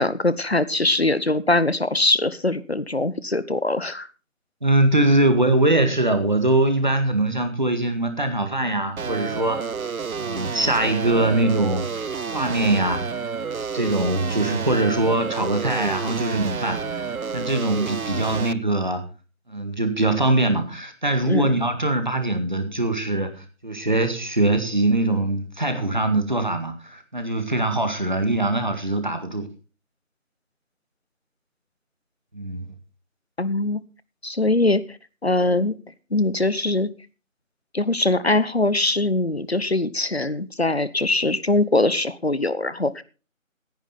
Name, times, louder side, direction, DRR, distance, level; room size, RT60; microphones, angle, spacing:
voice 1, 0.0-4.1 21.3-21.5 33.4-33.8 34.2-34.8 35.2-35.7 36.1-36.9 37.7-43.0, left 2 dB, 50° left, 16 dB, 1.0 m, -22 dB
voice 2, 4.6-9.7 10.2-12.0 12.3-13.3 13.6-19.0 19.5-29.5 32.3-32.7, right 2 dB, 35° right, 8 dB, 1.9 m, -22 dB
sound 1, 9.0-18.5, right 5 dB, 85° right, 0.8 m, -30 dB
17.0 x 10.5 x 4.1 m, 0.34 s
figure-of-eight pair, 175°, 41 cm